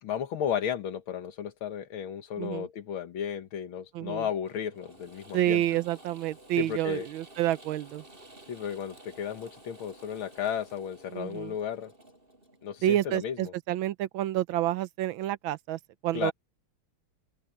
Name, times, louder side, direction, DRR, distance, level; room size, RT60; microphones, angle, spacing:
voice 1, 0.0-5.6 6.6-7.1 8.5-11.9 12.6-13.5 16.1-16.3, left 8 dB, 75° left, 2.2 m, -34 dB
voice 2, 3.9-4.3 5.3-8.0 11.1-11.5 12.8-16.3, right 13 dB, 75° right, 1.4 m, -29 dB
Mechanisms / Drill, 4.4-13.1, right 1 dB, 25° right, 5.7 m, -53 dB
open air
omnidirectional pair, 2.3 m